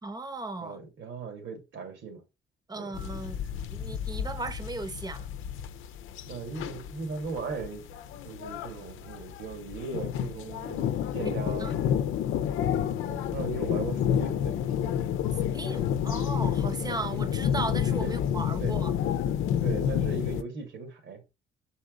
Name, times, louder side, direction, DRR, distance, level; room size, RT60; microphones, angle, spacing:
voice 1, 0.0-0.8 2.7-3.4 3.7-5.3 11.5-11.8 15.5-18.9, right 2 dB, 20° right, 1.0 m, -36 dB
voice 2, 0.6-2.2 2.8-2.9 6.3-7.8 8.2-11.7 13.1-15.0 16.8-17.0 18.0-18.1 18.6-18.8 19.6-21.3, right 4 dB, 70° right, 2.3 m, -38 dB
sound 1, 2.9-20.4, left 9 dB, 85° left, 0.6 m, -30 dB
6.2 x 4.2 x 3.9 m
cardioid pair, 90°, 20 cm